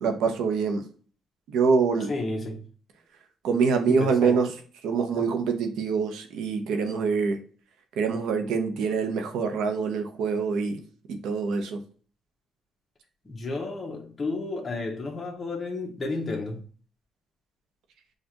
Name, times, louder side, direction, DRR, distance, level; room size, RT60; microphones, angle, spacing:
voice 1, 0.0-0.8 1.5-2.1 3.4-4.5 4.8-7.4 8.0-10.8 11.1-11.8, right 5 dB, 85° right, 0.9 m, -25 dB
voice 2, 2.1-2.6 3.9-4.4 5.2-5.3 13.2-16.6, left 3 dB, 30° left, 1.0 m, -32 dB
6.5 x 2.5 x 3.0 m
cardioid pair, 90°, 0 cm